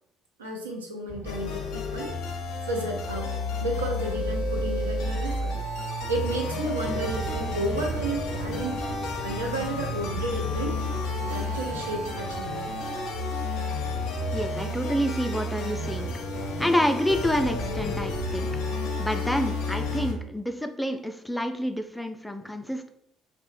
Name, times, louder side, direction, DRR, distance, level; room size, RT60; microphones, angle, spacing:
voice 1, 0.4-2.1 2.6-3.3 3.6-5.5 6.1-8.8 9.2-10.8 11.2-12.7, right 1 dB, 85° right, 0 dB, 0.4 m, -32 dB
sound 1, 1.1-3.6 6.8-14.0 17.1-18.3, equal, 65° right, 0.8 m, -40 dB
sound 2, 1.2-20.1, left 2 dB, 70° left, 0.4 m, -31 dB
voice 2, 14.3-18.5 19.0-22.9, equal, 5° left, 6 dB, 0.3 m, -28 dB
2.5 x 2.0 x 3.0 m, 0.72 s
figure-of-eight pair, 50°, 0 cm